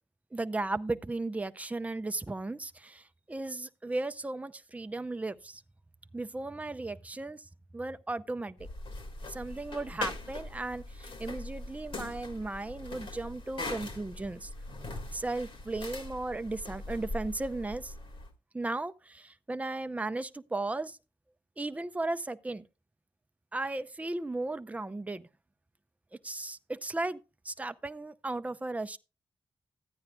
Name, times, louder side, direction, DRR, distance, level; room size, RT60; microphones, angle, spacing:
voice 1, 0.3-5.6 6.1-7.4 7.7-8.6 9.3-14.5 15.1-17.9 18.5-21.0 21.6-22.6 23.5-25.3 26.2-27.2 27.4-29.0, right 2 dB, 15° right, 0.5 m, -35 dB
sound 1, 8.6-18.3, left 2 dB, 65° left, 1.6 m, -41 dB
14.5 x 9.5 x 2.3 m
cardioid pair, 70°, 10 cm